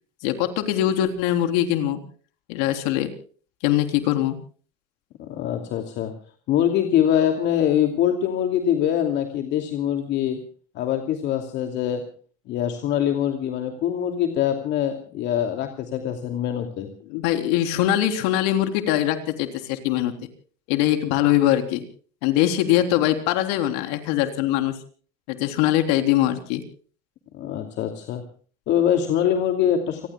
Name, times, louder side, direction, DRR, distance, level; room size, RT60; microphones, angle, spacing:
voice 1, 0.2-2.0 2.5-3.1 3.6-4.4 17.1-20.2 20.7-21.8 22.2-24.7 25.3-26.6, left 12 dB, 85° left, 6 dB, 3.7 m, -22 dB
voice 2, 5.2-6.1 6.5-10.4 10.7-12.0 12.5-16.9 27.3-28.2 28.7-30.1, left 10 dB, 55° left, 5 dB, 2.6 m, -23 dB
30.0 x 20.5 x 2.3 m, 0.43 s
cardioid pair, 140°, 21 cm